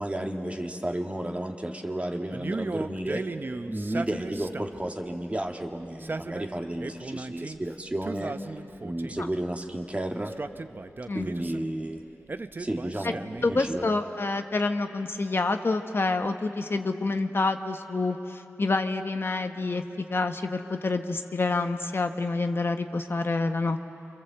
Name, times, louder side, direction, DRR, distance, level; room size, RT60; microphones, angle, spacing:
voice 1, 0.0-3.2 3.7-8.3 8.8-10.3 11.1-12.0 12.6-14.0, right 1 dB, 25° right, 3 dB, 1.9 m, -32 dB
Male speech man speaking, 2.3-4.9 5.8-7.6 8.0-9.3 10.2-11.7 12.3-13.8, right 3 dB, 40° right, 0.7 m, -36 dB
voice 2, 13.4-23.8, left 3 dB, 50° left, 6 dB, 1.1 m, -28 dB
29.5 x 26.0 x 7.8 m, 2.9 s
wide cardioid pair, 95°, 5 cm